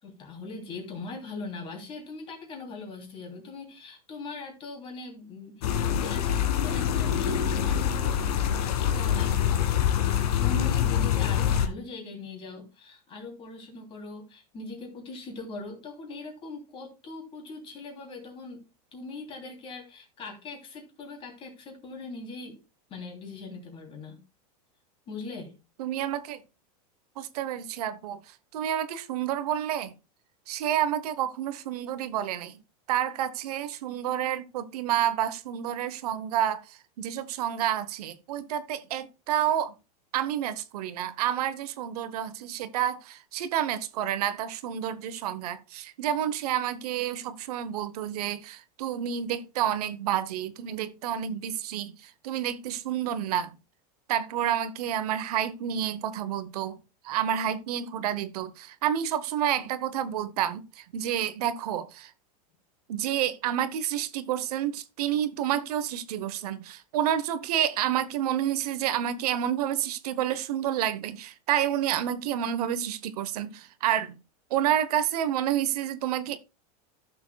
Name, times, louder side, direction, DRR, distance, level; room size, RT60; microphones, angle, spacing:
voice 1, 0.0-18.6 18.9-22.6 22.9-24.2 25.1-25.5, left 3 dB, 25° left, 3.1 m, -41 dB
sound 1, 5.6-11.7, left 9 dB, 75° left, 1.8 m, -25 dB
voice 2, 25.8-26.4 27.2-29.9 30.5-32.6 32.9-39.7 40.1-53.6 54.1-56.8 57.0-62.1 62.9-74.1 74.5-76.4, right 10 dB, 75° right, 1.0 m, -29 dB
14.5 x 6.9 x 2.3 m
supercardioid pair, 155°, 20 cm